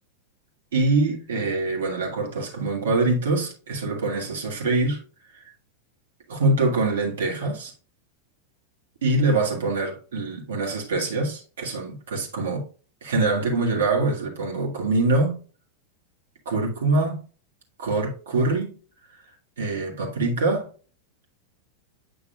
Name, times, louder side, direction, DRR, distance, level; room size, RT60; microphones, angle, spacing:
voice 1, 0.7-5.0 5.3-5.4 6.3-7.7 9.0-12.7 13.0-15.4 16.5-17.2 17.8-18.8 19.6-20.7, right 2 dB, 60° right, 1.8 m, -24 dB
8.1 x 5.9 x 2.3 m
figure-of-eight pair, 90°, 0 cm